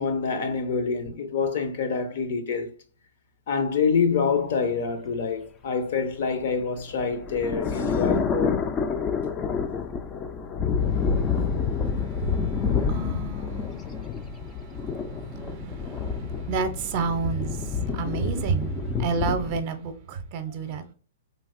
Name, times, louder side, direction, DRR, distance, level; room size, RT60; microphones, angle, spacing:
voice 1, 0.0-2.7 3.5-8.6, left 5 dB, 60° left, 0.6 m, -26 dB
sound 1, 6.5-19.6, left 6 dB, 20° left, 0.3 m, -28 dB
voice 2, 11.0-11.6 12.2-12.3 12.9-13.8 14.8-20.8, right 5 dB, 40° right, 0.6 m, -30 dB
3.2 x 2.5 x 2.4 m
hypercardioid pair, 140°, 0 cm